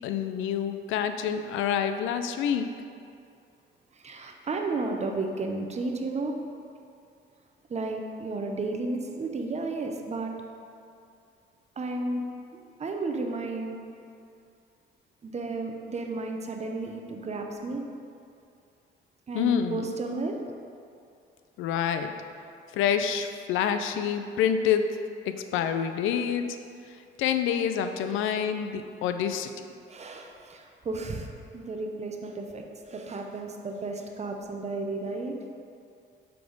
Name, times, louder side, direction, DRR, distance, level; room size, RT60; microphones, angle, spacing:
voice 1, 0.0-2.7 19.3-19.9 21.6-22.1 22.7-24.9 25.3-26.4 27.2-29.5, left 8 dB, 90° left, 8 dB, 0.4 m, -27 dB
voice 2, 4.0-6.3 7.7-10.3 11.8-12.2 12.5-13.8 15.2-17.8 19.3-20.4 29.9-31.3 31.5-35.3, right 3 dB, 35° right, 3 dB, 0.7 m, -33 dB
7.7 x 3.5 x 3.9 m, 2.4 s
cardioid pair, 90°, 20 cm